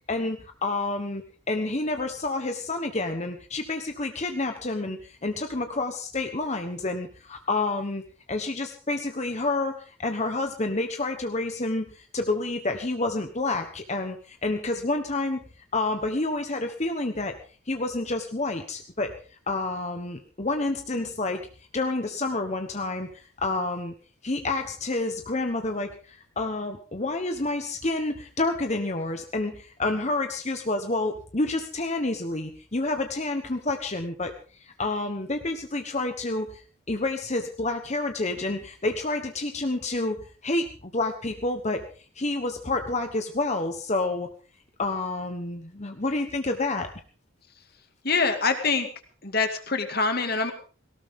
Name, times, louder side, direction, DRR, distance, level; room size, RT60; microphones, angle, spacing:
voice 1, 0.1-8.0 8.3-15.4 15.7-17.4 17.7-19.1 19.5-21.4 21.7-23.9 24.2-34.3 34.8-36.6 36.9-41.8 42.2-44.3 44.8-46.9, left 2 dB, 35° left, 6 dB, 1.2 m, -29 dB
voice 2, 48.0-48.9 49.2-50.5, left 4 dB, 50° left, 6 dB, 2.2 m, -25 dB
18.5 x 18.0 x 3.7 m, 0.39 s
head